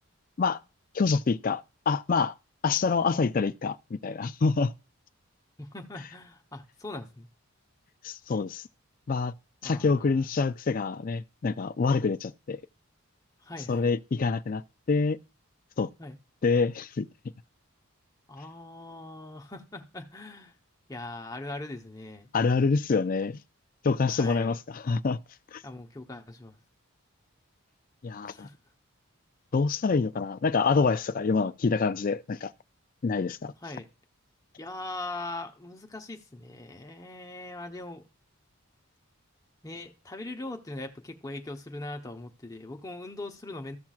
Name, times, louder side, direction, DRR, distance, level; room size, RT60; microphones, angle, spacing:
voice 1, 0.9-2.3 2.6-4.7 8.0-8.6 9.1-9.3 9.6-12.6 13.7-15.2 15.8-15.9 16.4-17.1 22.3-23.4 23.8-25.2 25.5-25.6 28.0-28.5 29.5-32.5 33.0-33.5, left 4 dB, 40° left, 0.4 m, -26 dB
voice 2, 5.6-7.3 9.6-10.1 13.4-13.9 16.0-16.2 18.3-20.5 20.9-22.3 24.1-24.5 25.6-26.6 28.2-28.5 33.6-33.9 34.6-38.0 39.6-43.8, left 2 dB, 15° left, 0.8 m, -40 dB
14.5 x 5.9 x 2.4 m
head